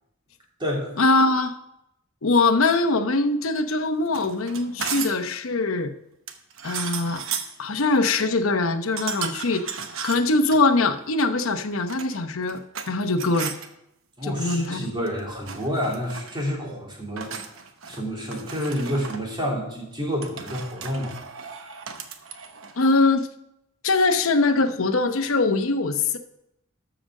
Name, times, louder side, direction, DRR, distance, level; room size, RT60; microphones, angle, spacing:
voice 1, 1.0-1.5 2.2-5.9 6.6-7.2 7.6-9.7 10.0-12.6 12.9-13.6 14.2-14.9 22.8-23.3 23.8-26.2, left 3 dB, 70° left, 8 dB, 0.8 m, -22 dB
sound 1, 4.1-5.3 6.3-7.6 9.0-10.6 11.7-12.9 13.2-13.7 14.8-15.2 15.5-16.3 17.2-18.0 18.3-19.2 20.2-22.8, right 6 dB, 65° right, 1.0 m, -35 dB
voice 2, 14.2-17.4 17.9-21.1, equal, 25° right, -3 dB, 3.1 m, -29 dB
13.0 x 5.1 x 6.4 m, 0.84 s
head